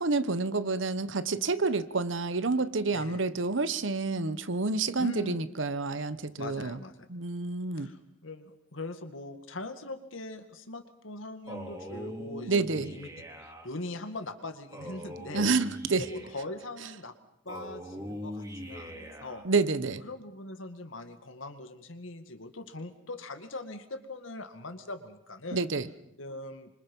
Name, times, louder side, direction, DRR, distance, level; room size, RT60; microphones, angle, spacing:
voice 1, 0.0-6.8 7.1-7.9 12.5-12.9 15.3-16.1 19.4-20.0 25.5-25.9, right 3 dB, 70° right, 14 dB, 1.1 m, -29 dB
voice 2, 2.9-3.2 5.0-5.4 6.4-7.1 7.7-13.1 13.4-15.5 16.0-17.1 17.4-19.5 20.0-25.6 26.2-26.7, left 2 dB, 80° left, 8 dB, 2.1 m, -41 dB
Male speech man speaking, 11.5-13.7 14.7-16.5 17.5-19.5, equal, 20° right, 3.7 m, -42 dB
26.5 x 25.0 x 5.5 m, 0.76 s
head